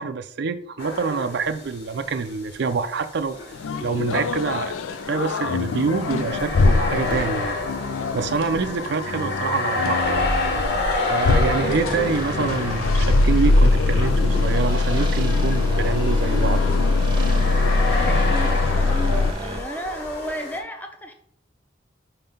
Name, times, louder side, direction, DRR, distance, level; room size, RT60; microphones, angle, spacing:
voice 1, 0.0-3.4 3.8-4.8 5.1-7.6 8.1-10.3 10.6-10.7 11.1-16.6, right 5 dB, 55° right, 9 dB, 0.4 m, -26 dB
sound 1, 0.8-1.9 2.2-2.3 3.3-20.6, left 2 dB, 60° left, 1.5 m, -29 dB
sound 2, 3.5-19.3, left 3 dB, 85° left, 0.4 m, -22 dB
sound 3, 11.3-19.6, right 1 dB, 25° right, 0.8 m, -32 dB
voice 2, 17.9-21.1, equal, 10° left, 4 dB, 0.7 m, -33 dB
5.5 x 3.7 x 5.4 m, 0.63 s
head